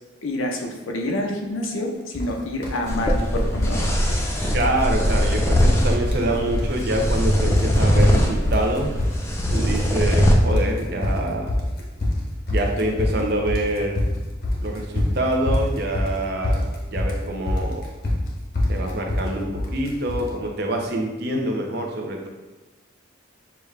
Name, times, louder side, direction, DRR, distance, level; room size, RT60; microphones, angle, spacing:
voice 1, 0.2-3.8, left 1 dB, 85° left, 1 dB, 0.8 m, -27 dB
sound 1, 2.1-2.3 2.6-3.3 3.5-4.3 4.5-4.8 5.1-5.2 5.5-6.3 6.5-7.2 7.5-20.3, left 1 dB, 45° left, 0.8 m, -25 dB
sound 2, 2.9-10.3, equal, 15° left, 0.4 m, -21 dB
voice 2, 4.5-8.9 9.5-11.5 12.5-14.0 14.6-17.9 18.7-22.3, right 1 dB, 50° right, 1 dB, 0.6 m, -26 dB
6.8 x 2.4 x 3.3 m, 1.1 s
head